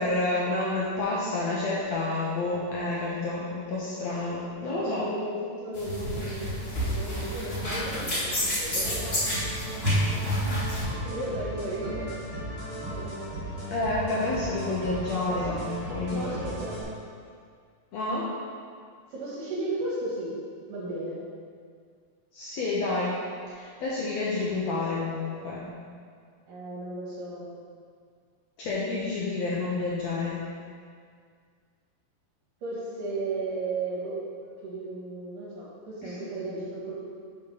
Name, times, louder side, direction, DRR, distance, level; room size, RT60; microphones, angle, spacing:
voice 1, 0.0-5.1 13.7-16.3 17.9-18.3 22.3-23.2 23.5-25.7 28.6-30.4 36.0-36.2, left 2 dB, 75° left, -6 dB, 1.6 m, -29 dB
voice 2, 4.6-9.1 11.0-12.3 12.9-13.3 16.1-16.8 19.1-20.3 20.7-21.2 26.5-27.5 32.6-34.2 34.6-36.9, right 2 dB, 70° right, -7 dB, 2.8 m, -34 dB
sound 1, 5.7-10.8, equal, 30° left, 1.1 m, -29 dB
sound 2, 8.8-16.8, right 1 dB, 40° right, 2.5 m, -36 dB
5.7 x 5.2 x 5.5 m, 2.1 s
omnidirectional pair, 4.0 m